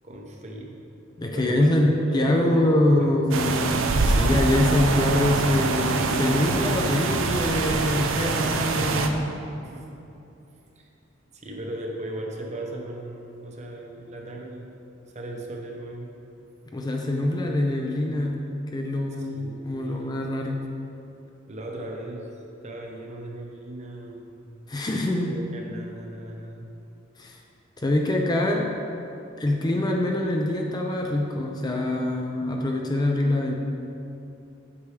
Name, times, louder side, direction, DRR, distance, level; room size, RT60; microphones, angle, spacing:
voice 1, 0.0-0.7 1.3-1.7 2.1-2.9 9.6-10.0 10.8-10.9 11.3-14.8 15.1-16.1 19.3-20.0 21.5-22.3 22.6-24.3 25.3-26.7, right 1 dB, 35° right, 0 dB, 0.8 m, -37 dB
voice 2, 1.2-9.3 16.7-18.4 18.7-20.6 24.7-25.3 27.2-27.4 27.8-28.7 29.4-33.5, left 1 dB, 20° left, 1 dB, 0.4 m, -24 dB
sound 1, 3.3-9.1, right 3 dB, 70° right, 0.5 m, -24 dB
8.4 x 6.0 x 3.3 m, 2.8 s
head